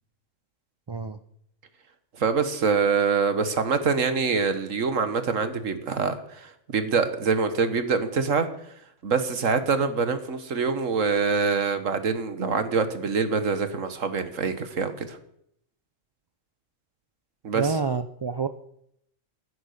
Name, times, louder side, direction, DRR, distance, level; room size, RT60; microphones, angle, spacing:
voice 1, 0.9-1.2 17.5-18.5, right 4 dB, 40° right, 10 dB, 0.4 m, -28 dB
voice 2, 2.1-8.5 9.0-15.2 17.4-17.8, right 5 dB, 85° right, 10 dB, 1.8 m, -25 dB
15.5 x 11.0 x 6.6 m, 0.72 s
omnidirectional pair, 1.3 m